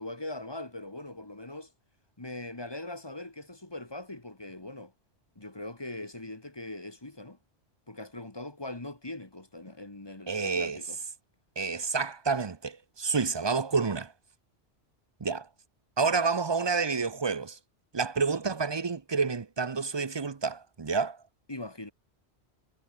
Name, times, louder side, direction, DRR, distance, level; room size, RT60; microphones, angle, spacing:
voice 1, 0.0-1.7 2.2-4.9 5.3-7.4 7.9-11.0 21.5-21.9, left 2 dB, 20° left, 1.6 m, -41 dB
voice 2, 10.3-10.8 11.6-14.1 15.2-15.5 16.0-17.6 17.9-21.2, right 4 dB, 30° right, 0.6 m, -29 dB
omnidirectional pair, 1.1 m